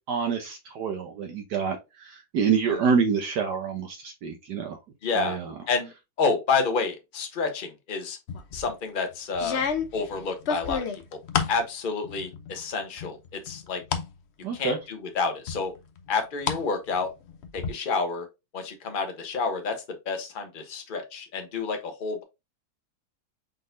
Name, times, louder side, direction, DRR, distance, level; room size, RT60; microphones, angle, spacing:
voice 1, 0.1-4.8 5.1-5.5 14.4-14.8, right 6 dB, 65° right, 1.3 m, -27 dB
voice 2, 5.0-5.4 5.7-5.9 6.2-8.2 8.5-9.6 9.9-10.8 11.5-13.8 14.5-15.7 16.1-17.1 17.5-18.3 18.5-19.8 20.1-22.2, left 4 dB, 35° left, 0.9 m, -29 dB
sound 1, 8.3-8.7 9.3-11.6 12.0-12.6 13.0-14.1 14.5-14.6 15.5-16.6 16.9-17.7, left 6 dB, 85° left, 0.5 m, -30 dB
5.3 x 3.9 x 2.6 m
omnidirectional pair, 2.1 m